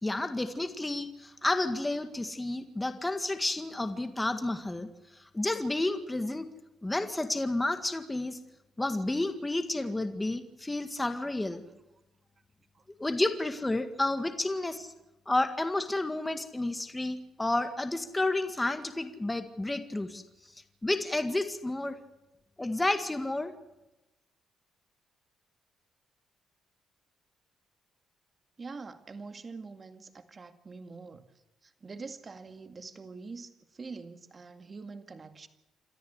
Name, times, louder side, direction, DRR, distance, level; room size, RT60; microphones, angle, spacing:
voice 1, 0.0-4.9 5.3-6.5 6.8-8.4 8.8-11.6 13.0-14.9 15.3-20.2 20.8-22.0 22.6-23.5, left 2 dB, 15° left, 8 dB, 1.9 m, -31 dB
voice 2, 28.6-31.2 31.6-35.5, right 4 dB, 35° right, 9 dB, 2.1 m, -45 dB
27.5 x 13.5 x 8.1 m, 0.97 s
cardioid pair, 90°, 0 cm